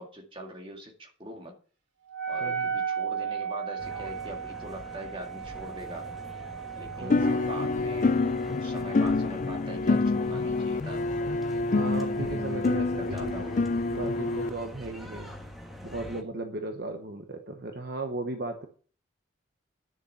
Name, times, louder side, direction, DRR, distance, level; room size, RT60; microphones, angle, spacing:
voice 1, 0.0-1.5 2.3-6.1 6.8-11.0 11.8-11.9 12.9-13.7, equal, 25° right, 1 dB, 2.2 m, -42 dB
Wind instrument woodwind instrument, 2.1-7.9, right 7 dB, 70° right, 2.7 m, -35 dB
sound 1, 3.8-16.2, equal, ahead, 1.3 m, -44 dB
voice 2, 7.0-7.3 11.7-13.3 13.9-15.3 15.8-18.7, right 2 dB, 55° right, 5 dB, 1.1 m, -36 dB
sound 2, 7.1-14.5, left 3 dB, 40° left, 0.4 m, -27 dB
10.5 x 6.9 x 5.8 m, 0.41 s
head